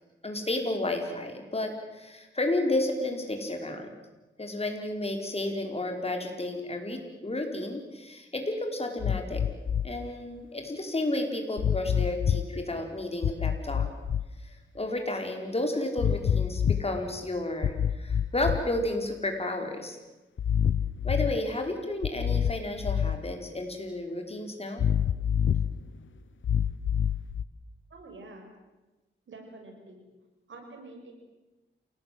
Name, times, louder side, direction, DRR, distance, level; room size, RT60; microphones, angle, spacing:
voice 1, 0.2-3.9 4.4-9.4 9.8-13.9 14.4-20.0 21.0-24.9, left 1 dB, 30° left, 4 dB, 5.1 m, -32 dB
sound 1, 9.0-9.9 11.6-12.5 13.2-14.3 16.0-16.9 17.6-18.9 20.4-21.4 22.0-23.2 24.8-25.8 26.4-27.4, left 8 dB, 85° left, 0.9 m, -27 dB
voice 2, 27.9-28.5 29.3-30.0 30.5-31.1, right 2 dB, 85° right, 3 dB, 6.5 m, -47 dB
28.0 x 19.5 x 7.9 m, 1.1 s
wide cardioid pair, 80°, 19 cm